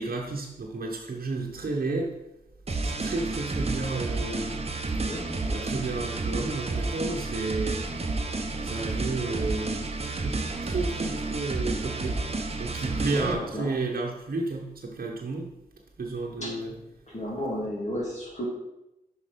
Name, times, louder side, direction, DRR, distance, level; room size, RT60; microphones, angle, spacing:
voice 1, 0.0-2.1 2.8-4.7 5.5-7.9 8.6-9.8 10.2-12.2 12.6-15.5 16.0-16.7, right 3 dB, 60° right, -2 dB, 1.0 m, -32 dB
sound 1, 2.7-13.3, right 3 dB, 40° right, 0.9 m, -31 dB
voice 2, 5.1-5.6 13.1-13.7 16.4-16.5 17.1-18.4, equal, 45° left, -5 dB, 2.5 m, -33 dB
5.5 x 4.7 x 5.1 m, 0.91 s
cardioid pair, 40°, 16 cm